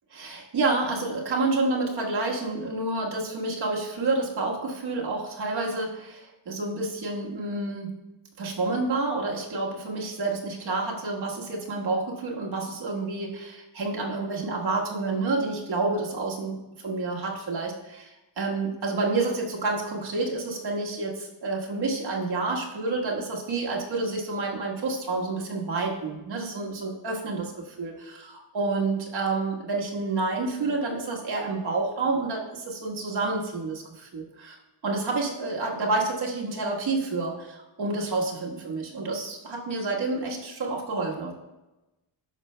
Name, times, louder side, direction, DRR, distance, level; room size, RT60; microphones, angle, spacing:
voice 1, 0.1-7.9 8.4-34.6 34.8-41.3, right 3 dB, 55° right, -2 dB, 1.5 m, -29 dB
11.0 x 6.5 x 2.2 m, 1.0 s
wide cardioid pair, 150°, 48 cm